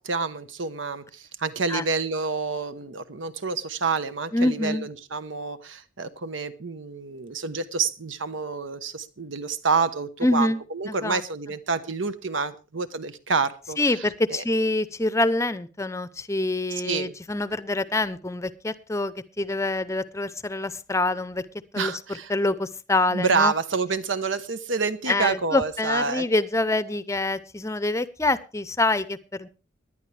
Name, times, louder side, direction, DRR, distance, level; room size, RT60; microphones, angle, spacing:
voice 1, 0.0-14.4 16.7-17.1 21.7-22.3 23.1-26.2, right 4 dB, 80° right, 12 dB, 1.1 m, -28 dB
voice 2, 4.3-4.9 10.2-10.6 10.9-11.2 13.8-21.4 21.7-21.9 22.3-23.5 25.1-29.5, left 2 dB, 15° left, 15 dB, 0.6 m, -26 dB
19.5 x 11.0 x 3.4 m, 0.32 s
head